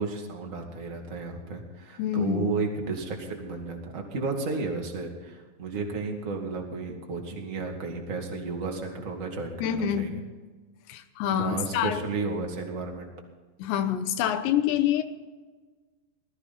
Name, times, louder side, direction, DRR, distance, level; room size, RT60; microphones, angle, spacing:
voice 1, 0.0-10.1 11.3-13.1, right 3 dB, 30° right, 1 dB, 1.4 m, -33 dB
voice 2, 2.0-2.5 9.6-10.2 10.9-12.0 13.6-15.0, left 9 dB, 90° left, 8 dB, 3.3 m, -26 dB
19.5 x 14.5 x 4.2 m, 1.4 s
omnidirectional pair, 5.0 m